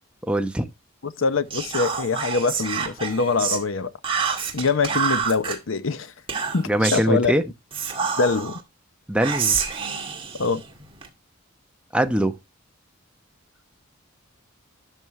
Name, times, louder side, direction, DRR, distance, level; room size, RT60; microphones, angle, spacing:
voice 1, 0.2-0.7 6.7-7.4 9.1-9.6 11.9-12.4, right 1 dB, 5° right, 0.9 m, -22 dB
voice 2, 1.0-3.9 4.5-6.1 6.5-7.3 8.2-8.5 10.4-10.6, left 4 dB, 70° left, 0.8 m, -24 dB
Whispering, 1.5-3.6 4.0-5.6 6.3-7.1 7.7-8.6 9.2-11.1, right 6 dB, 25° right, 2.1 m, -27 dB
12.5 x 6.2 x 3.1 m
head